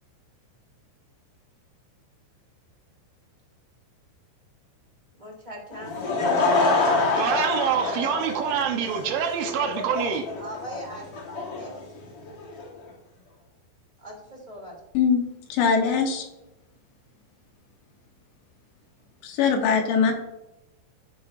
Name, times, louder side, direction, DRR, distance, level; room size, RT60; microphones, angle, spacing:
voice 1, 5.1-6.3 6.6-7.2 8.0-8.1 10.4-12.1 14.0-14.8, equal, 15° right, -2 dB, 1.7 m, -41 dB
Laughter / Crowd, 5.7-12.6, left 3 dB, 90° left, 1.2 m, -26 dB
voice 2, 7.2-10.3, right 7 dB, 75° right, 4 dB, 3.3 m, -26 dB
voice 3, 14.9-16.3 19.2-20.1, left 6 dB, 70° left, 2 dB, 3.3 m, -22 dB
16.0 x 6.7 x 2.7 m, 0.94 s
omnidirectional pair, 5.7 m